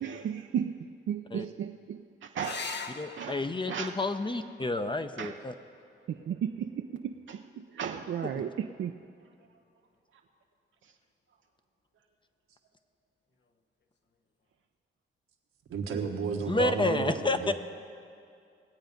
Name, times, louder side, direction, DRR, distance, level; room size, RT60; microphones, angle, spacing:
voice 1, 0.0-2.8 3.2-4.0 5.2-5.4 6.1-9.0 10.8-10.9, right 8 dB, 65° right, 4 dB, 0.5 m, -35 dB
sound 1, 2.4-7.4 9.3-9.9 13.4-13.5 13.8-13.9, left 4 dB, 55° left, 1.0 m, -45 dB
voice 2, 3.0-5.5 16.5-17.5, left 2 dB, 25° left, 9 dB, 0.7 m, -30 dB
voice 3, 15.7-17.5, right 5 dB, 90° right, 1 dB, 1.4 m, -32 dB
20.0 x 7.9 x 5.3 m, 2.4 s
cardioid pair, 65°, 21 cm